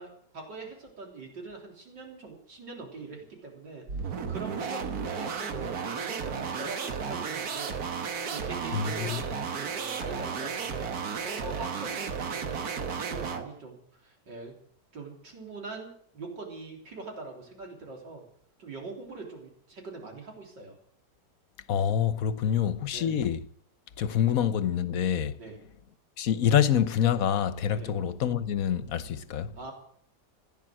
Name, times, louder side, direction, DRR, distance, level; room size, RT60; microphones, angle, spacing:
voice 1, 0.0-7.8 8.3-10.9 11.2-14.6 14.9-18.2 18.6-20.8 22.4-22.6 22.9-23.1 25.4-25.6 27.7-27.9 29.5-29.7, right 3 dB, 90° right, 4.2 m, -43 dB
sound 1, 3.9-13.5, right 6 dB, 60° right, 1.7 m, -33 dB
voice 2, 8.7-9.2 21.7-23.4 24.0-25.4 26.2-29.5, left 9 dB, 60° left, 1.2 m, -26 dB
15.5 x 10.0 x 7.6 m
omnidirectional pair, 1.9 m